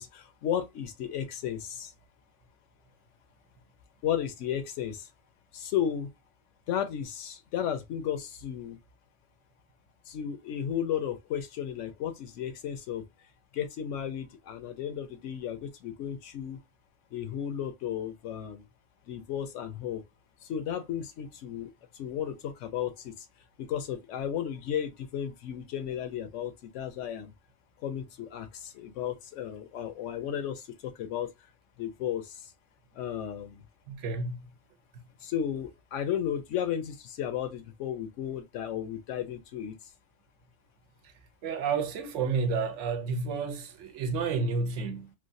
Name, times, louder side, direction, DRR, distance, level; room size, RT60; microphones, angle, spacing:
voice 1, 0.0-1.9 4.0-5.1 5.5-6.1 6.7-8.8 10.1-13.0 13.5-16.6 17.1-18.7 19.1-20.0 20.4-23.3 23.6-27.3 27.8-31.3 31.8-32.5 32.9-33.6 35.2-39.7, left 9 dB, 85° left, 1.0 m, -34 dB
voice 2, 33.9-34.5 41.4-45.1, right 4 dB, 80° right, 1.0 m, -30 dB
3.2 x 2.3 x 2.5 m
omnidirectional pair, 1.2 m